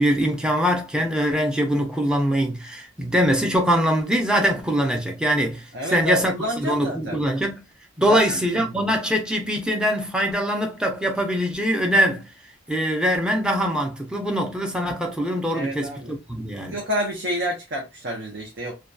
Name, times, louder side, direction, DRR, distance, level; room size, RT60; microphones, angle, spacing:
voice 1, 0.0-7.6 8.0-12.2 12.7-16.8, equal, 5° right, 0.5 m, -23 dB
voice 2, 5.7-7.2 8.0-8.9 15.5-16.1 16.6-18.8, equal, 60° right, 0.7 m, -29 dB
2.7 x 2.2 x 2.2 m
head